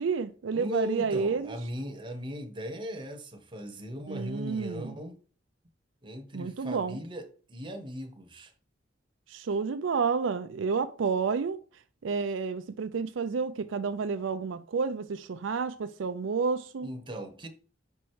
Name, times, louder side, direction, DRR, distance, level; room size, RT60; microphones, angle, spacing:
voice 1, 0.0-1.5 4.1-4.9 6.3-7.0 9.3-11.6 12.0-16.9, right 5 dB, 80° right, 0.4 m, -30 dB
voice 2, 0.5-5.2 6.0-8.5 16.8-17.5, equal, 25° right, 0.9 m, -38 dB
5.2 x 4.5 x 4.7 m
head